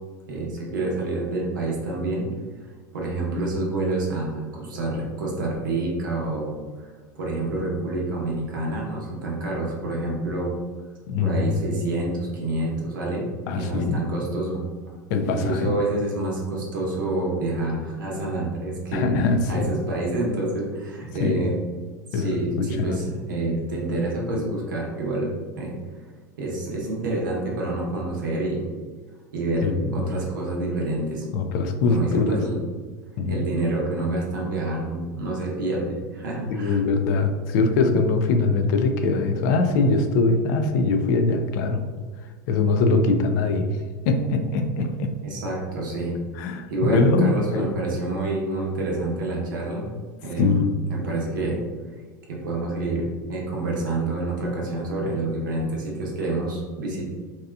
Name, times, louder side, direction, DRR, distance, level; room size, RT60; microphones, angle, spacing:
voice 1, 0.3-2.3 2.9-6.9 7.2-10.5 11.2-13.2 13.5-14.6 15.2-21.5 22.1-25.3 25.6-25.7 26.4-28.7 29.3-31.2 31.8-32.5 33.3-36.8 45.2-46.1 46.7-49.9 50.2-51.6 52.3-57.0, right 2 dB, 80° right, -2 dB, 0.8 m, -27 dB
voice 2, 11.1-11.8 13.5-14.0 15.1-15.7 18.9-19.6 21.2-21.5 22.1-23.0 29.6-30.1 31.3-32.6 33.2-33.4 36.5-41.9 42.5-43.7 44.0-45.1 46.4-47.7 50.4-50.7, left 3 dB, 65° left, 6 dB, 0.4 m, -22 dB
2.8 x 2.3 x 2.2 m, 1.4 s
hypercardioid pair, 100°, 11 cm